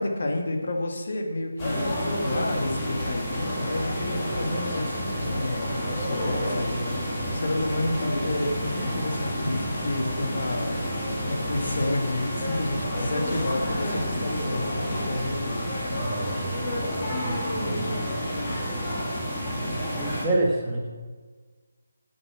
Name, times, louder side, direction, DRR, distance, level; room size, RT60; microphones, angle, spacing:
voice 1, 0.0-10.8 11.3-15.7, left 2 dB, 60° left, 2 dB, 1.9 m, -30 dB
sound 1, 1.6-20.3, equal, 20° left, 2.4 m, -29 dB
voice 2, 15.9-16.6 17.2-18.1 19.9-20.9, right 2 dB, 10° right, -2 dB, 1.3 m, -28 dB
9.5 x 7.8 x 7.3 m, 1.4 s
figure-of-eight pair, 170°, 0 cm